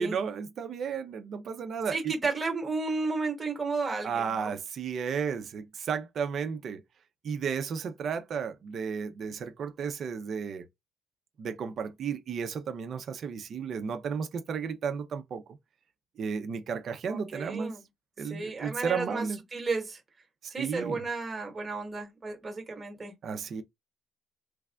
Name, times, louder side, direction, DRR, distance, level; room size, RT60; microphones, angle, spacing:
voice 1, 0.0-2.1 4.0-6.8 7.2-10.7 11.4-15.4 16.2-17.7 18.2-19.4 20.6-21.0 23.2-23.6, right 6 dB, 45° right, 0.6 m, -33 dB
voice 2, 1.9-4.5 17.1-17.8 18.3-20.0 20.5-23.1, right 3 dB, 15° right, 1.2 m, -33 dB
3.2 x 2.4 x 3.3 m
cardioid pair, 180°, 0 cm